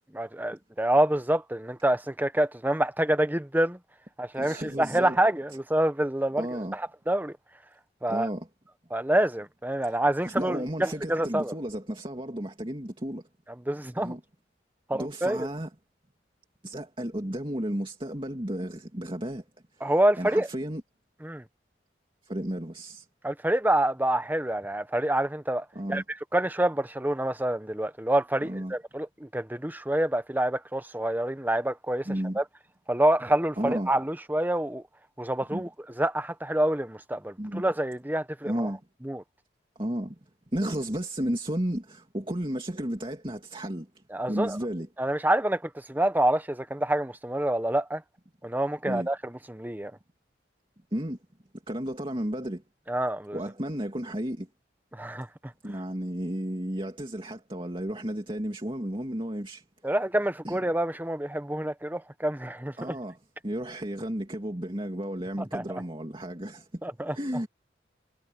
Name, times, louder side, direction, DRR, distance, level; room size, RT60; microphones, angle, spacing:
voice 1, 0.1-3.8 4.2-6.5 6.7-7.4 8.0-8.3 8.9-11.5 13.7-14.1 14.9-15.5 19.8-20.5 21.2-21.4 23.2-26.0 26.3-32.1 32.4-32.5 32.9-34.8 35.2-35.7 36.0-38.7 39.0-39.2 44.1-44.6 45.0-48.0 48.4-49.9 52.9-53.4 54.9-55.3 59.8-63.0 65.5-65.8 66.8-67.2, right 1 dB, 10° right, 1.0 m, -27 dB
voice 2, 4.4-5.2 6.4-6.8 8.1-8.5 10.3-13.2 14.0-14.2 14.9-15.7 16.6-19.4 19.7-20.8 22.2-23.1 25.7-26.0 28.4-28.7 32.1-32.4 33.6-33.9 35.5-35.6 37.4-37.6 38.4-38.8 39.8-40.2 40.5-44.9 48.9-49.1 50.9-51.2 51.7-52.6 53.3-54.5 55.6-59.6 60.4-60.6 62.8-63.2 63.4-66.8 67.1-67.5, right 1 dB, 30° right, 2.6 m, -33 dB
head